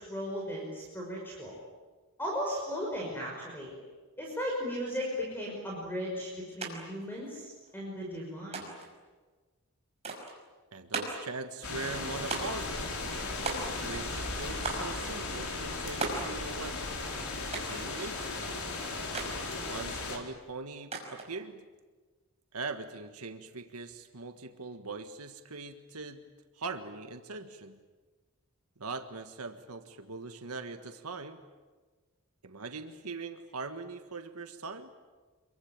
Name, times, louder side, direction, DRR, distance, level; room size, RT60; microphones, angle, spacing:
voice 1, 0.0-1.6 2.2-3.7 4.2-8.7, equal, 10° left, -2 dB, 5.7 m, -36 dB
sound 1, 6.6-6.7 7.0-7.8 8.5-8.9 10.0-10.4 10.9-11.3 12.3-12.7 13.5-14.0 14.6-14.9 16.0-16.3 17.5-17.8 19.1-19.4 20.9-21.3, right 3 dB, 30° right, 5.6 m, -36 dB
voice 2, 10.7-12.8 13.8-16.8 17.6-18.4 19.6-21.6 22.5-26.2 26.5-27.8 28.8-31.4 32.4-34.9, right 3 dB, 85° right, 7 dB, 1.7 m, -41 dB
sound 2, 11.6-20.2, left 3 dB, 75° left, 4.5 m, -36 dB
27.0 x 23.5 x 8.9 m, 1.3 s
head